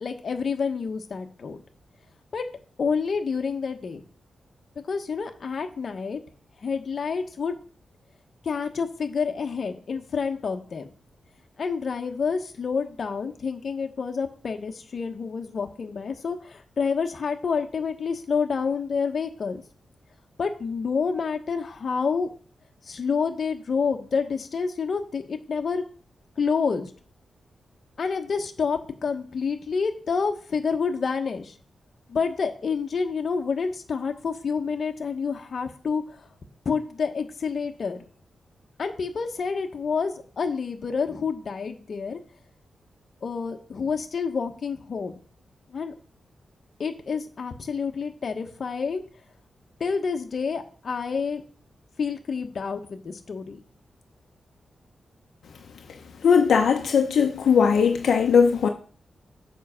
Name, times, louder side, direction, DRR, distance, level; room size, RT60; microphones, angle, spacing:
voice 1, 0.0-1.6 2.3-2.4 2.8-4.0 4.9-6.2 6.6-7.5 8.4-10.9 11.6-19.6 20.4-22.3 22.8-25.8 26.4-26.9 28.0-31.5 32.1-36.0 36.6-38.0 38.8-42.2 43.2-45.1 45.7-45.9 46.8-49.0 49.8-51.4 52.0-53.6, left 5 dB, 55° left, 1.3 m, -28 dB
voice 2, 56.2-58.7, left 6 dB, 75° left, 0.9 m, -19 dB
7.5 x 5.6 x 5.7 m
wide cardioid pair, 115°, 0 cm